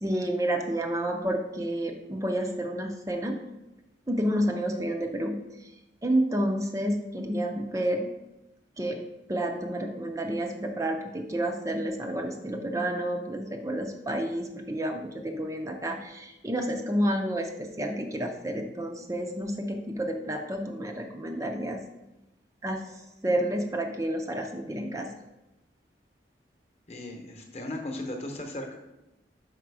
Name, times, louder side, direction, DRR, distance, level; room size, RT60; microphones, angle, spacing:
voice 1, 0.0-3.4 4.1-5.7 6.0-8.1 8.8-9.0 9.3-21.8 22.6-25.1, right 1 dB, 20° right, 3 dB, 0.5 m, -30 dB
voice 2, 26.9-28.8, left 1 dB, 35° left, 3 dB, 0.9 m, -36 dB
6.0 x 5.0 x 4.7 m, 0.96 s
head